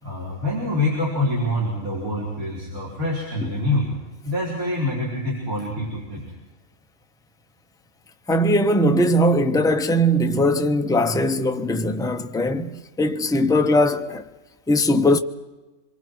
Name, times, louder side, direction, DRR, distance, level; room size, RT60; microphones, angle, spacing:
voice 1, 0.0-3.9 4.2-6.2, left 1 dB, 85° right, 4.8 m, -25 dB
voice 2, 8.3-14.2 14.7-15.2, equal, 5° left, 0.6 m, -20 dB
26.0 x 24.0 x 4.6 m
omnidirectional pair, 1.4 m